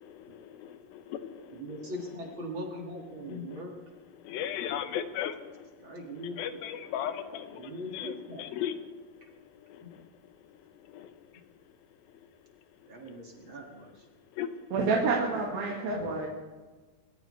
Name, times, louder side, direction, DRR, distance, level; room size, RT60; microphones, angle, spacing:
voice 1, 0.0-1.5 3.5-3.6 4.2-5.4 6.2-8.8 10.9-11.1 14.4-14.5, left 10 dB, 85° left, 10 dB, 2.8 m, -36 dB
voice 2, 1.5-3.7 5.8-6.4 7.5-8.6 12.9-14.1 15.9-16.1, equal, 40° right, 0 dB, 2.4 m, -40 dB
voice 3, 14.7-16.3, right 4 dB, 80° right, -1 dB, 3.7 m, -28 dB
27.0 x 14.0 x 3.3 m, 1.4 s
omnidirectional pair, 4.1 m